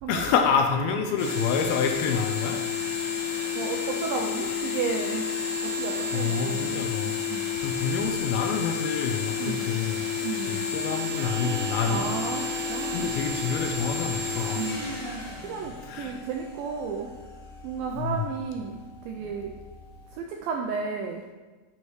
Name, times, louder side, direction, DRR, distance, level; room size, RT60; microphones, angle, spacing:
voice 1, 0.1-2.6 6.1-7.2 7.6-10.0 10.5-12.1 12.9-14.7 15.8-16.2 18.0-18.3, left 6 dB, 80° left, 4 dB, 2.3 m, -27 dB
sound 1, 1.2-16.4, left 5 dB, 45° left, 0.4 m, -31 dB
voice 2, 3.2-5.3 5.6-6.8 7.3-7.4 9.4-9.7 10.2-10.7 11.9-13.2 14.6-14.8 15.4-17.1 17.6-19.5 20.1-21.2, right 5 dB, 85° right, 2 dB, 2.0 m, -33 dB
Clock, 11.2-20.2, left 3 dB, 45° right, 2.2 m, -42 dB
9.3 x 5.5 x 3.2 m, 1.3 s
omnidirectional pair, 4.6 m